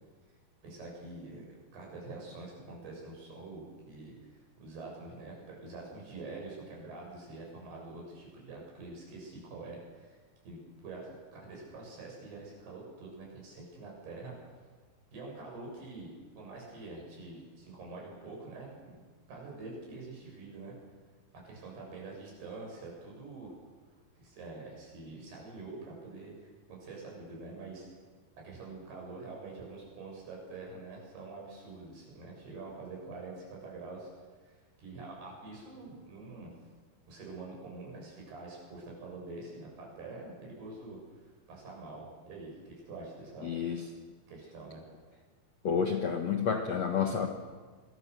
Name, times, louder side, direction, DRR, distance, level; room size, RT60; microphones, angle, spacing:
voice 1, 0.6-1.5 1.7-4.3 4.6-10.2 10.4-14.3 15.1-16.1 16.4-19.0 19.3-20.7 21.5-23.5 24.2-27.9 28.4-34.1 34.4-36.5 37.1-43.5 44.3-44.9, right 3 dB, 65° right, -2 dB, 8.9 m, -46 dB
voice 2, 43.4-43.8 45.6-47.3, left 6 dB, 60° left, 3 dB, 1.8 m, -30 dB
26.5 x 22.0 x 6.8 m, 1.4 s
omnidirectional pair, 4.9 m